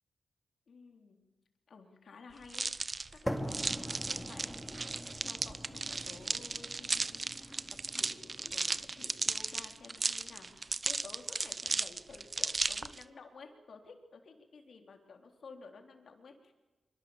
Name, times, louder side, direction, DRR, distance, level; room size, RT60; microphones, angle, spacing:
voice 1, 0.7-1.2 1.7-2.7 3.1-7.6 7.9-16.5, left 4 dB, 70° left, 4 dB, 3.7 m, -53 dB
sound 1, 2.5-13.0, right 3 dB, 45° right, 0.8 m, -35 dB
sound 2, 3.3-11.3, equal, ahead, 3.2 m, -44 dB
25.0 x 24.5 x 7.3 m, 1.2 s
supercardioid pair, 40°, 0 cm